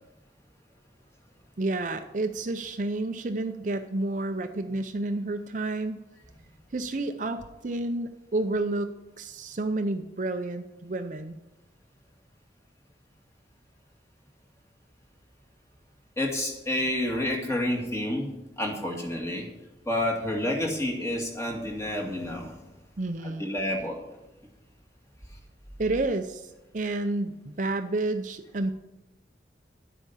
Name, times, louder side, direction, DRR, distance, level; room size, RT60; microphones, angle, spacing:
voice 1, 1.6-6.0 6.7-11.4 23.0-23.4 25.8-28.7, right 2 dB, 45° right, 7 dB, 0.6 m, -30 dB
voice 2, 16.2-19.5 19.9-22.7 23.2-24.0, left 1 dB, 15° left, -1 dB, 2.2 m, -29 dB
11.0 x 8.2 x 5.7 m, 1.0 s
head